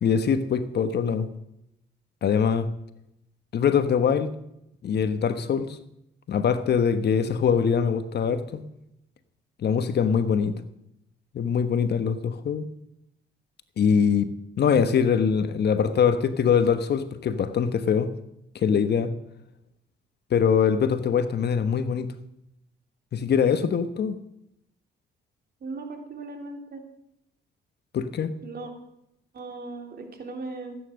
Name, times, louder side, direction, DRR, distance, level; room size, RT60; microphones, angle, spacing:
voice 1, 0.0-1.3 2.2-2.7 3.5-4.3 4.8-5.8 6.3-8.6 9.6-10.6 11.3-12.7 13.8-14.3 14.6-18.1 18.5-19.1 20.3-22.1 23.1-24.2 27.9-28.3, left 7 dB, 55° left, 11 dB, 1.2 m, -23 dB
voice 2, 25.6-26.8 28.4-28.7 29.3-30.8, right 3 dB, 50° right, 4 dB, 3.1 m, -37 dB
15.5 x 9.3 x 6.4 m, 0.80 s
cardioid pair, 90°, 20 cm